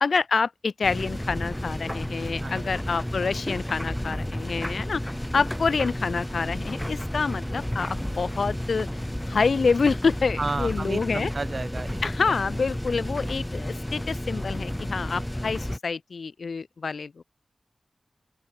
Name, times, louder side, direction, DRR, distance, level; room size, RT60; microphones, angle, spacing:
voice 1, 0.0-8.9 9.3-11.3 12.0-17.2, left 4 dB, 75° left, 1.1 m, -27 dB
sound 1, 0.8-15.8, left 1 dB, 5° left, 1.0 m, -32 dB
voice 2, 2.4-2.7 5.3-5.4 10.4-12.0 15.1-15.4, right 3 dB, 45° right, 1.5 m, -33 dB
open air
wide cardioid pair, 105°, 0 cm